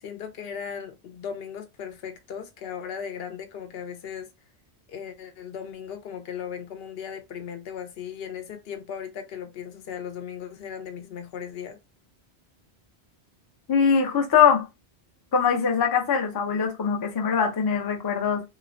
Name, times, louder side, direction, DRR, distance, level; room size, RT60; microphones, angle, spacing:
voice 1, 0.0-4.3 4.9-11.8, left 7 dB, 70° left, 0.8 m, -37 dB
voice 2, 13.7-14.7 15.3-18.4, left 7 dB, 35° left, 0.4 m, -22 dB
3.1 x 2.0 x 2.5 m
omnidirectional pair, 1.1 m